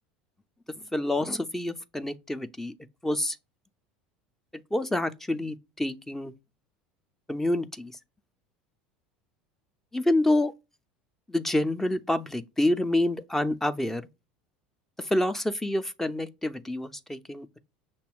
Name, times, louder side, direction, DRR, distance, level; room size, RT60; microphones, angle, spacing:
voice 1, 0.9-2.7 3.0-3.4 4.7-6.3 7.3-7.9 9.9-10.5 11.3-14.1 15.0-17.6, left 1 dB, 10° left, 0.5 m, -27 dB
6.0 x 2.2 x 3.5 m
hypercardioid pair, 75°, 4 cm